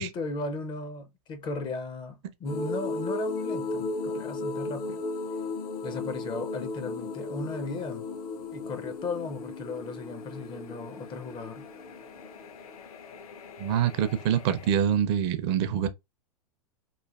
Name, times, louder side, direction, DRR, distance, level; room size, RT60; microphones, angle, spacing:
voice 1, 0.0-5.0 5.8-8.1 8.5-11.7, left 3 dB, 25° left, 0.4 m, -36 dB
sound 1, 2.4-14.7, left 3 dB, 65° left, 0.6 m, -36 dB
voice 2, 13.6-15.9, right 9 dB, 45° right, 0.5 m, -25 dB
3.1 x 2.2 x 2.3 m
hypercardioid pair, 105°, 20 cm